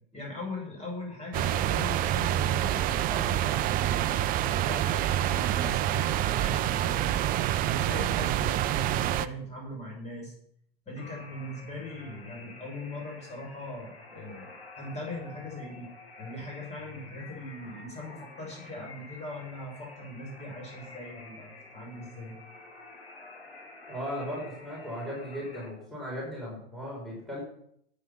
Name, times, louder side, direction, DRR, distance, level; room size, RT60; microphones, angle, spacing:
voice 1, 0.1-7.1 7.6-10.3 10.9-15.9 16.2-22.4, left 1 dB, 20° left, -1 dB, 7.0 m, -40 dB
sound 1, 1.3-9.3, right 12 dB, 30° right, 0.7 m, -27 dB
sound 2, 11.0-25.7, left 3 dB, 85° left, 5.5 m, -49 dB
voice 2, 23.9-27.4, equal, ahead, -4 dB, 6.2 m, -37 dB
13.0 x 9.7 x 5.7 m, 0.69 s
hypercardioid pair, 105°, 30 cm